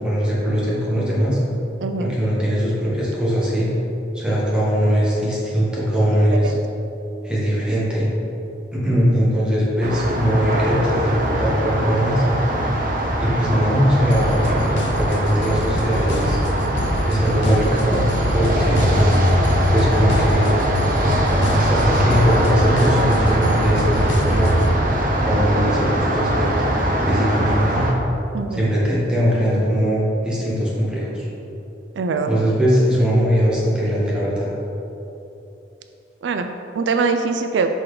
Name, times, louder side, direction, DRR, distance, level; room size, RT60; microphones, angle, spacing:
voice 1, 0.0-1.4 2.0-3.7 4.1-6.5 7.2-8.1 8.7-12.2 13.2-14.4 15.0-16.4 17.0-18.1 18.3-19.1 19.7-20.6 21.3-24.5 25.2-26.7 27.0-27.9 28.5-31.3 32.3-34.5, equal, 5° right, -7 dB, 1.5 m, -20 dB
voice 2, 1.8-2.1 6.4-6.6 28.3-28.7 32.0-32.3 36.2-37.7, right 4 dB, 90° right, 7 dB, 0.4 m, -23 dB
sound 1, 9.8-27.9, right 1 dB, 50° right, 0.7 m, -21 dB
sound 2, 14.1-24.8, left 1 dB, 85° left, 0.6 m, -26 dB
6.0 x 4.0 x 4.8 m, 3.0 s
head